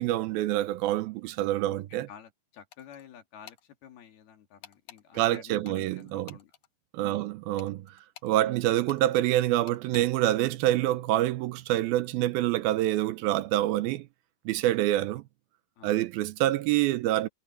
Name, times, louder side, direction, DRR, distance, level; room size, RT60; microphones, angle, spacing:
voice 1, 0.0-2.1 5.1-6.4 6.9-7.9 8.2-14.1 14.5-15.2 15.8-17.3, right 14 dB, 80° right, 2.6 m, -26 dB
voice 2, 2.1-6.5 7.0-7.3 8.4-8.6 14.9-15.0 15.8-16.1, left 9 dB, 80° left, 4.3 m, -50 dB
sound 1, 2.7-3.1 3.5-3.6 4.6-5.0 5.6-6.7 7.6-8.3 8.9-9.0 9.7-10.1, left 11 dB, 60° left, 2.4 m, -50 dB
omnidirectional pair, 4.4 m